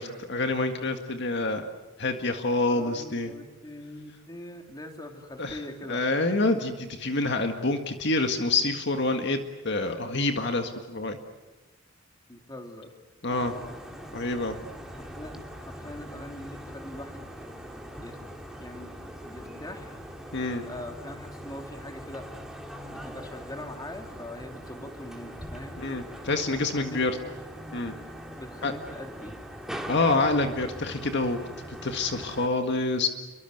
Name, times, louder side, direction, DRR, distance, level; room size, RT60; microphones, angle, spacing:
voice 1, 0.0-1.7 2.0-3.3 5.4-5.6 5.9-9.4 9.6-11.2 13.2-13.5 14.1-14.6 20.3-20.6 25.8-27.1 27.7-27.9 28.6-28.7 29.9-31.4 31.8-33.1, left 2 dB, 60° left, 6 dB, 1.8 m, -27 dB
voice 2, 2.7-6.0 12.3-12.9 15.0-15.3 15.6-17.5 18.0-18.2 18.6-18.9 19.2-20.0 20.5-22.3 22.9-25.8 26.6-27.3 28.4-29.4, left 1 dB, 20° left, 4 dB, 3.3 m, -42 dB
sound 1, 13.3-32.5, equal, 5° right, 2.7 m, -42 dB
29.5 x 23.5 x 8.0 m, 1.2 s
head